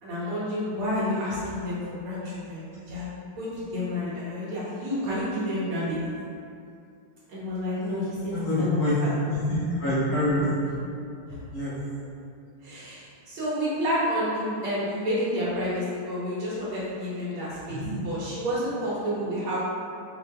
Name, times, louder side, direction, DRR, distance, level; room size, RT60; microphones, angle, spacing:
voice 1, 0.0-3.1 3.4-6.0 7.3-9.1 11.3-11.4 12.6-19.6, equal, 75° right, -9 dB, 2.1 m, -30 dB
voice 2, 8.3-9.0 9.3-10.7 11.5-11.8 17.7-17.9, left 1 dB, 55° left, -10 dB, 1.2 m, -26 dB
5.2 x 2.7 x 3.3 m, 2.5 s
omnidirectional pair, 2.4 m